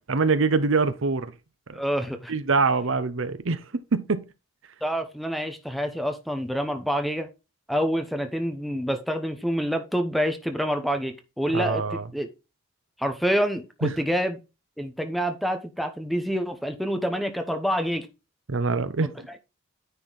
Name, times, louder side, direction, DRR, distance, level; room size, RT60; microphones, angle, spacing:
voice 1, 0.1-1.3 2.3-4.3 11.5-12.1 13.8-13.9 18.5-19.4, right 4 dB, 60° right, 0.7 m, -24 dB
voice 2, 1.7-2.3 4.8-7.3 7.7-12.3 13.0-14.4 14.8-18.1 19.0-19.1, equal, ahead, 0.9 m, -27 dB
9.6 x 4.5 x 3.9 m
head